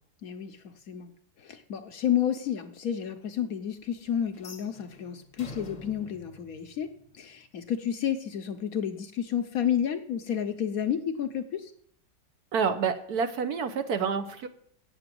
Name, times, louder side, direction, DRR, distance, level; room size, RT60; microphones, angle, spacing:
voice 1, 0.2-1.1 1.4-6.9 7.2-11.7, left 9 dB, 60° left, 7 dB, 1.1 m, -31 dB
sound 1, 4.3-7.4, left 1 dB, 25° left, 0.9 m, -47 dB
voice 2, 12.5-14.5, right 6 dB, 65° right, 9 dB, 1.2 m, -28 dB
8.7 x 7.9 x 7.6 m, 0.62 s
omnidirectional pair, 1.9 m